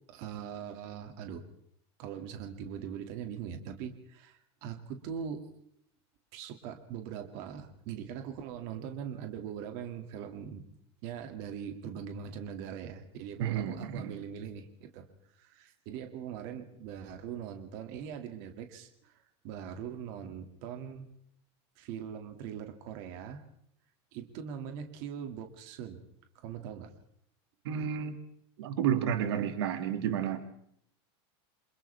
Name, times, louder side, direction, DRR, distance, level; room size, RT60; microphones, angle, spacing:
voice 1, 0.1-1.5 2.0-5.4 6.3-10.7 11.0-15.1 15.4-21.1 21.8-23.4 24.1-26.0 26.3-26.9, right 8 dB, 40° right, 5 dB, 2.3 m, -41 dB
voice 2, 13.4-14.2 27.6-28.2 28.6-30.4, right 9 dB, 65° right, 7 dB, 2.3 m, -31 dB
28.5 x 27.0 x 3.5 m, 0.70 s
supercardioid pair, 180°, 14 cm